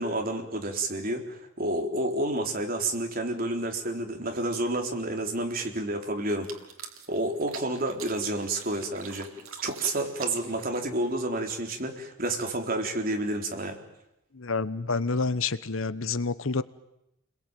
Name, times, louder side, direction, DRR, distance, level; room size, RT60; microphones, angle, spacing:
voice 1, 0.0-6.5 7.1-9.3 9.6-13.8, right 1 dB, 40° right, 3 dB, 4.0 m, -30 dB
sound 1, 6.3-11.2, right 6 dB, 75° right, 3.4 m, -45 dB
voice 2, 14.3-16.6, left 4 dB, 65° left, 15 dB, 1.0 m, -28 dB
30.0 x 21.5 x 9.2 m, 0.86 s
head